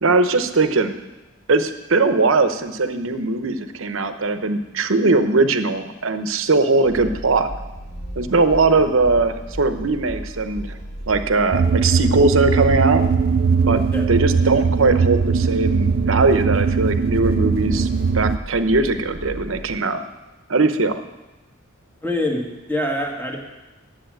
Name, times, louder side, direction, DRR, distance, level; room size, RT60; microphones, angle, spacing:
voice 1, 0.0-1.0 1.5-7.5 8.2-10.8 11.1-13.0 13.7-17.9 18.1-20.0 20.5-21.0, right 3 dB, 70° right, 9 dB, 0.9 m, -20 dB
sound 1, 6.8-19.8, equal, 35° left, 2.3 m, -35 dB
sound 2, 11.5-18.4, right 5 dB, 45° right, 0.4 m, -20 dB
voice 2, 22.0-23.4, left 1 dB, 10° left, 0 dB, 1.7 m, -25 dB
10.5 x 7.5 x 8.9 m, 1.1 s
head